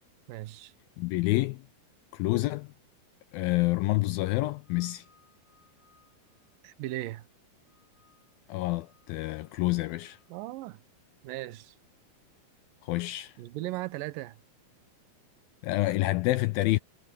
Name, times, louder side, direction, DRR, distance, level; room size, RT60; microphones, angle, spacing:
voice 1, 0.3-0.7 6.6-7.2 10.3-10.8 11.2-11.7 13.4-14.4, right 17 dB, 70° right, 2.3 m, -37 dB
voice 2, 1.0-1.6 2.1-2.7 3.3-5.1 8.5-10.2 12.8-13.4 15.6-16.8, left 19 dB, 80° left, 2.1 m, -28 dB
sound 1, 4.4-7.3 7.6-8.4 8.8-10.3, left 4 dB, 35° right, 4.3 m, -67 dB
omnidirectional pair, 4.6 m